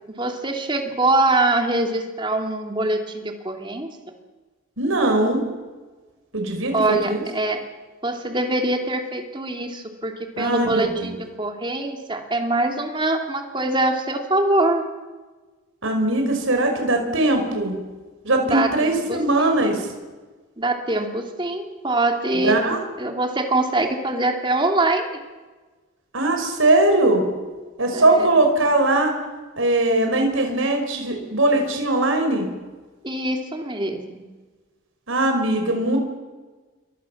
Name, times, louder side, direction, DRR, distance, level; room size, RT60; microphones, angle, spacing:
voice 1, 0.1-4.0 6.7-7.6 8.0-14.8 18.5-19.7 20.6-22.6 23.0-25.2 27.9-28.3 33.0-34.3, right 2 dB, 20° right, 4 dB, 2.7 m, -24 dB
voice 2, 4.8-5.4 6.3-7.2 10.4-11.2 15.8-17.7 18.2-19.9 22.3-22.8 26.1-27.2 27.8-29.1 29.6-32.5 35.1-36.0, right 2 dB, 75° right, 4 dB, 5.3 m, -20 dB
29.5 x 23.5 x 7.3 m, 1.3 s
head